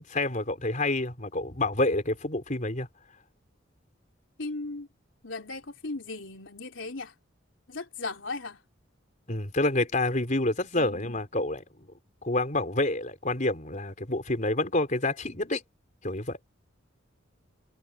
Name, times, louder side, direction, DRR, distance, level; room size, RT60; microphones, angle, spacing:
voice 1, 0.0-2.9 9.3-11.6 12.2-15.6 16.0-16.4, left 2 dB, 40° left, 4.4 m, -28 dB
voice 2, 4.4-4.9 5.2-7.1 7.7-8.6 10.8-11.2, left 3 dB, 75° left, 3.5 m, -37 dB
head